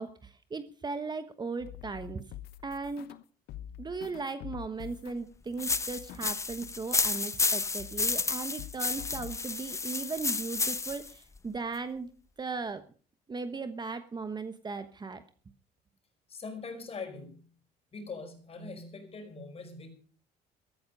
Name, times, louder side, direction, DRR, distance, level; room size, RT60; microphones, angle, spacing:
voice 1, 0.0-2.2 2.6-3.1 3.8-12.1 12.4-12.8 13.3-15.2, right 4 dB, 25° right, 11 dB, 1.1 m, -37 dB
sound 1, 1.6-3.2 3.5-7.4 7.8-8.3 8.6-9.4, left 13 dB, 75° left, 0.9 m, -46 dB
sound 2, 5.6-11.1, left 3 dB, 15° left, 0.8 m, -31 dB
voice 2, 16.3-17.5 17.9-19.9, left 4 dB, 35° left, 6 dB, 5.3 m, -42 dB
14.0 x 13.5 x 5.3 m, 0.40 s
cardioid pair, 110°, 17 cm